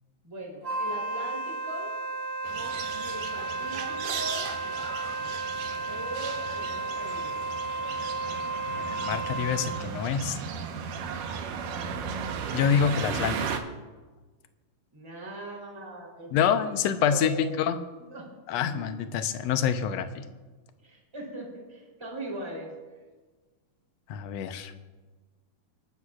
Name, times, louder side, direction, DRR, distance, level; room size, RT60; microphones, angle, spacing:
voice 1, 0.2-1.9 3.0-4.5 5.9-7.4 14.9-17.6 18.1-18.3 18.7-19.1 20.8-22.7, right 1 dB, 10° right, -1 dB, 3.0 m, -40 dB
Wind instrument woodwind instrument, 0.6-9.9, right 3 dB, 25° right, 3.7 m, -33 dB
sound 1, 2.4-13.6, right 6 dB, 80° right, 2.6 m, -36 dB
voice 2, 8.7-10.4 12.5-13.6 16.3-17.8 18.5-20.2 24.1-24.7, left 8 dB, 75° left, 8 dB, 1.6 m, -27 dB
29.0 x 13.0 x 2.4 m, 1.3 s
omnidirectional pair, 3.7 m